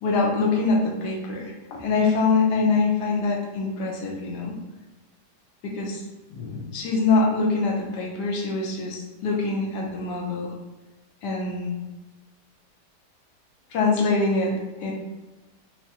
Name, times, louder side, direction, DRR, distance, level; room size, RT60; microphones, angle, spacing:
voice 1, 0.0-4.6 5.6-6.0 6.3-10.5 11.2-11.7 13.7-14.5 14.8-14.9, left 3 dB, 85° left, -2 dB, 1.3 m, -24 dB
4.7 x 2.0 x 2.8 m, 1.1 s
omnidirectional pair, 1.8 m